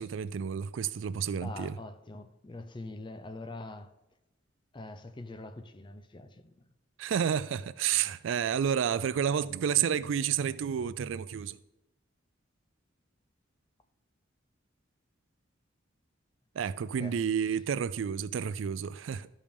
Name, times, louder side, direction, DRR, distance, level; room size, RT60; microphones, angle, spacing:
voice 1, 0.0-1.7 7.0-11.6 16.6-19.3, right 8 dB, 80° right, 0.4 m, -30 dB
voice 2, 1.4-3.9 4.7-6.6 16.9-17.2, left 2 dB, 25° left, 0.5 m, -44 dB
12.5 x 5.2 x 3.5 m
head